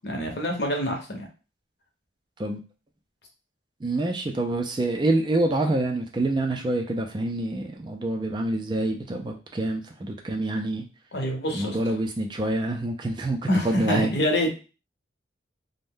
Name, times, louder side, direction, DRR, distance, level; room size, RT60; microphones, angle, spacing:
voice 1, 0.0-1.3 11.1-11.8 13.5-14.5, equal, 60° left, 3 dB, 0.8 m, -26 dB
voice 2, 3.8-10.8 11.5-13.4 13.6-14.1, right 2 dB, 25° right, 3 dB, 0.3 m, -26 dB
2.5 x 2.1 x 3.5 m, 0.33 s
head